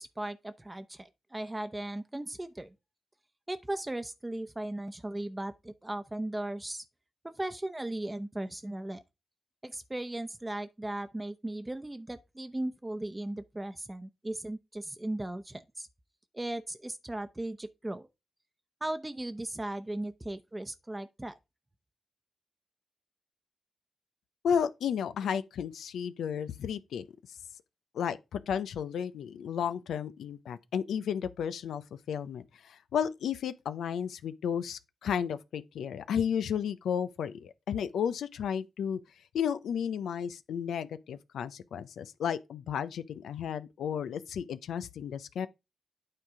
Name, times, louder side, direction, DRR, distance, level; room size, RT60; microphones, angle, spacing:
voice 1, 0.0-2.7 3.5-6.9 7.2-9.0 9.6-15.9 16.3-18.1 18.8-21.4, right 1 dB, 20° right, 0.8 m, -37 dB
voice 2, 24.4-27.1 27.9-39.0 39.3-45.5, left 8 dB, 85° left, 0.5 m, -33 dB
8.9 x 3.9 x 4.7 m
supercardioid pair, 40°, 0 cm